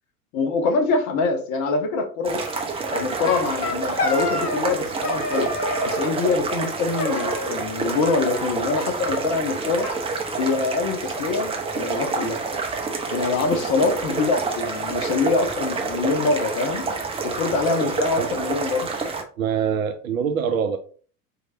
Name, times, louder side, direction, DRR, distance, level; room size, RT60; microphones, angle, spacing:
voice 1, 0.3-2.4 2.9-5.5 5.9-9.9 10.4-12.4 13.1-16.8 17.2-18.9, left 4 dB, 40° left, 0.9 m, -24 dB
sound 1, 2.2-19.2, right 4 dB, 10° right, 0.6 m, -28 dB
sound 2, 2.9-4.8 5.0-6.1 7.0-7.8 8.0-8.9 9.1-9.2 9.5-9.6 9.8-10.9, left 3 dB, 85° left, 0.9 m, -29 dB
voice 2, 19.4-20.8, right 7 dB, 60° right, 0.6 m, -24 dB
4.7 x 3.2 x 2.6 m
figure-of-eight pair, 80°, 46 cm